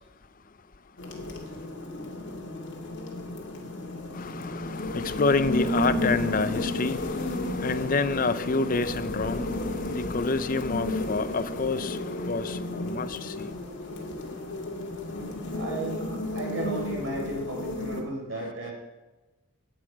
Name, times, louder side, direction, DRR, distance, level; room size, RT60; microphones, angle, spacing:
sound 1, 1.0-18.0, left 1 dB, 55° left, 2.3 m, -33 dB
voice 1, 4.2-13.5, left 3 dB, 40° left, 13 dB, 0.6 m, -28 dB
voice 2, 15.5-18.7, right 2 dB, 65° right, -1 dB, 4.5 m, -34 dB
19.0 x 8.0 x 4.9 m, 1.1 s
head